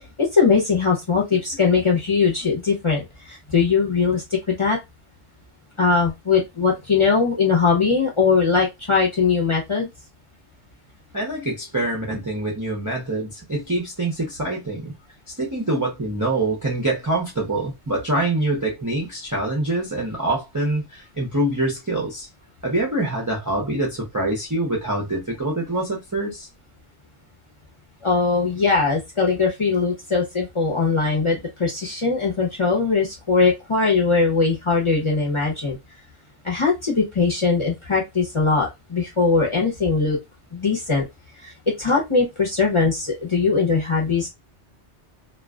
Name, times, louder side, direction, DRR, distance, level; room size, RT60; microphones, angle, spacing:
voice 1, 0.2-4.8 5.8-9.9 28.0-35.8 36.4-40.2 40.5-41.0 41.4-41.5 41.8-44.3, left 4 dB, 30° left, 0.7 m, -20 dB
voice 2, 11.1-14.9 15.4-22.3 22.6-26.5, right 2 dB, 25° right, 0.5 m, -25 dB
2.4 x 2.3 x 2.2 m
omnidirectional pair, 1.2 m